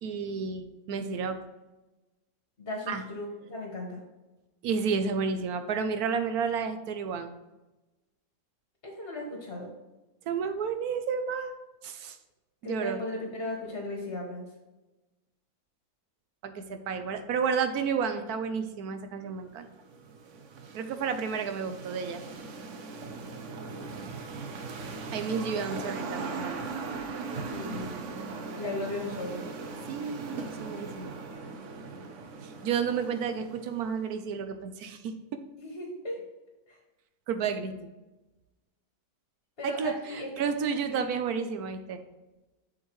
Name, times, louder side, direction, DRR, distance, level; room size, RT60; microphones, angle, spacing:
voice 1, 0.0-1.4 2.9-3.0 4.6-7.3 10.3-11.5 11.8-12.2 12.6-13.0 16.4-19.7 20.7-22.2 25.1-26.6 29.9-31.1 32.4-35.1 37.3-37.7 39.6-42.0, right 6 dB, 85° right, 8 dB, 1.2 m, -31 dB
voice 2, 2.6-4.0 8.8-9.7 12.6-14.4 27.5-28.0 28.6-29.4 35.6-36.2 36.7-36.8 39.6-40.3 40.7-41.1, left 2 dB, 40° left, -2 dB, 1.7 m, -36 dB
sound 1, 19.5-34.0, right 4 dB, 60° right, 1.0 m, -39 dB
7.5 x 6.5 x 3.1 m, 1.1 s
omnidirectional pair, 1.6 m